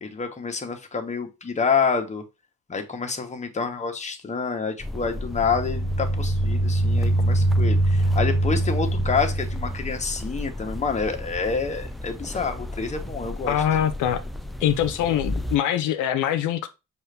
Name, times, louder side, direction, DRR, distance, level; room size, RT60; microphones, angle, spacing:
voice 1, 0.0-2.2 2.7-13.6, left 5 dB, 25° left, 0.9 m, -28 dB
sound 1, 4.8-15.6, left 1 dB, ahead, 0.3 m, -33 dB
sound 2, 5.2-9.9, right 2 dB, 55° right, 1.2 m, -23 dB
voice 2, 13.5-14.2 14.6-16.7, left 10 dB, 80° left, 0.5 m, -23 dB
5.4 x 2.5 x 3.3 m
cardioid pair, 90°, 30 cm